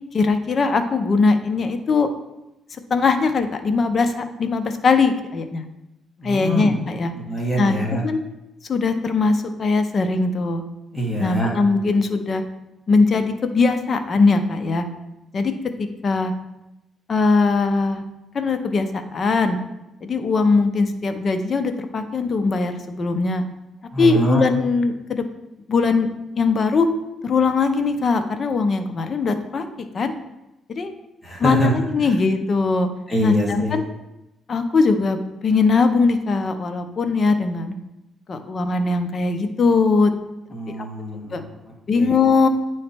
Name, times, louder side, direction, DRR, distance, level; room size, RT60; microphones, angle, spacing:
voice 1, 0.1-2.1 2.9-5.6 6.2-7.1 7.6-8.2 8.7-10.6 11.2-12.4 12.9-14.9 15.3-15.5 15.8-16.3 17.1-18.0 18.3-19.6 20.0-23.4 24.0-25.2 25.7-26.1 26.4-26.9 27.2-30.1 30.7-30.9 31.4-32.9 33.2-33.8 34.5-37.7 38.3-40.1 41.3-41.4 41.9-42.5, left 4 dB, 45° left, 8 dB, 0.7 m, -20 dB
voice 2, 6.2-6.8 7.1-8.0 10.9-11.5 23.9-24.5 31.2-31.7 32.0-32.1 33.1-33.8 40.5-42.2, right 1 dB, 20° left, -3 dB, 2.0 m, -24 dB
8.8 x 3.2 x 4.4 m, 0.94 s
cardioid pair, 90°, 0 cm